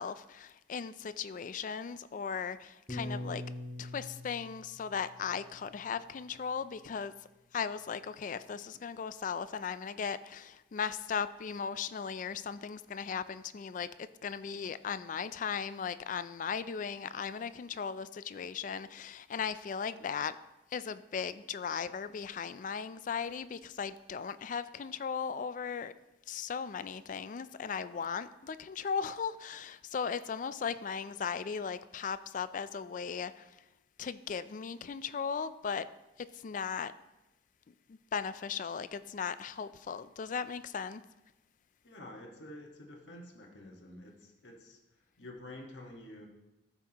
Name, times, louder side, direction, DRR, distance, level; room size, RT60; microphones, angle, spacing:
voice 1, 0.0-3.4 3.8-7.1 7.5-20.4 20.7-25.9 26.3-33.6 34.0-35.9 36.2-36.9 37.7-41.0, left 6 dB, 45° left, 14 dB, 0.3 m, -37 dB
Piano, 2.9-7.3, left 1 dB, 30° left, 1.2 m, -44 dB
voice 2, 41.8-44.8 45.2-46.3, left 1 dB, 90° left, 1 dB, 1.5 m, -49 dB
13.5 x 5.9 x 2.9 m, 0.97 s
head